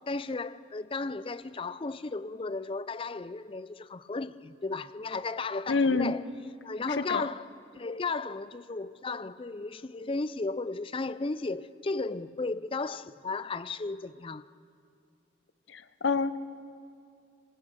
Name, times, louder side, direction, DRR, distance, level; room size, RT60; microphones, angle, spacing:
voice 1, 0.0-6.2 6.6-7.5 7.7-14.4, left 3 dB, 25° left, 0.4 m, -34 dB
voice 2, 5.7-6.1 7.1-7.2 15.7-16.4, left 4 dB, 65° left, 0.8 m, -27 dB
26.5 x 19.0 x 6.4 m
head